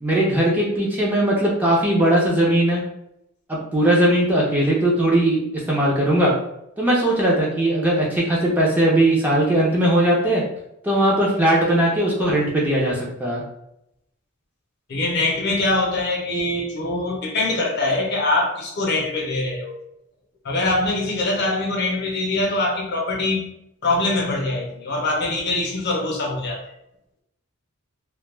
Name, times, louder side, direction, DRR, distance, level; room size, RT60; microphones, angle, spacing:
voice 1, 0.0-2.8 3.5-5.4 5.7-6.3 6.8-10.4 10.8-13.4, right 1 dB, 10° right, -4 dB, 0.4 m, -19 dB
voice 2, 14.9-19.8 20.4-23.4 23.8-26.6, left 2 dB, 45° left, 0 dB, 0.5 m, -23 dB
2.1 x 2.1 x 3.1 m, 0.81 s
head